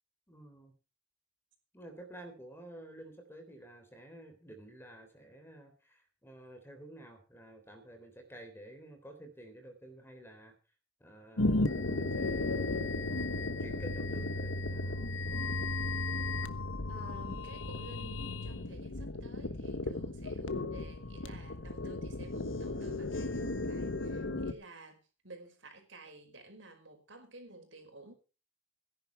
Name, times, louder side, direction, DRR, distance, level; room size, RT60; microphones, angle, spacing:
voice 1, 0.3-0.7 1.7-10.5 11.0-12.9 13.6-15.0 24.3-24.6, right 1 dB, 10° left, 3.5 m, -51 dB
sound 1, 11.4-24.5, left 2 dB, 85° left, 1.3 m, -35 dB
voice 2, 16.9-28.1, right 2 dB, 70° right, 5.2 m, -53 dB
17.5 x 11.0 x 4.5 m
head